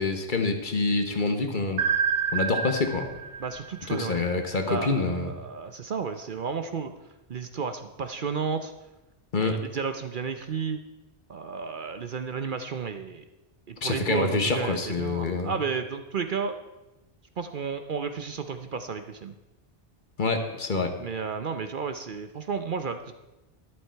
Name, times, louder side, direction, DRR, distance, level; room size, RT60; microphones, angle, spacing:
voice 1, 0.0-1.8 2.3-3.1 3.9-5.3 9.3-9.6 13.8-15.5 20.2-20.9, left 3 dB, 45° left, 6 dB, 1.3 m, -26 dB
sound 1, 1.8-4.7, right 7 dB, 85° right, 1.1 m, -29 dB
voice 2, 3.4-4.2 4.7-6.9 7.3-8.7 9.4-10.8 11.3-13.2 13.7-16.6 17.4-19.3 21.0-23.1, right 5 dB, 55° right, 8 dB, 0.8 m, -32 dB
12.0 x 11.0 x 4.5 m, 1.0 s
omnidirectional pair, 1.2 m